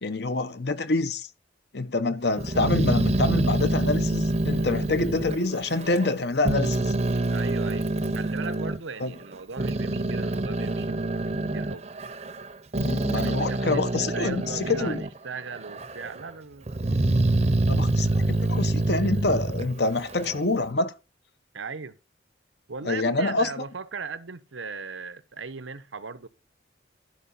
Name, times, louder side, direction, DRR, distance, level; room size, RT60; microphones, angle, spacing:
voice 1, 0.0-1.3 1.7-6.9 9.0-9.1 12.8-15.0 17.7-20.9 22.8-23.6, left 2 dB, 60° left, 0.9 m, -26 dB
Growling, 2.4-6.1 6.4-8.8 9.3-15.2 15.5-16.2 16.7-20.4, right 2 dB, 35° right, 0.7 m, -26 dB
voice 2, 7.3-7.9 8.1-11.8 13.1-16.7 21.5-22.0 22.7-26.3, right 4 dB, 90° right, 0.9 m, -38 dB
12.0 x 4.9 x 5.5 m
head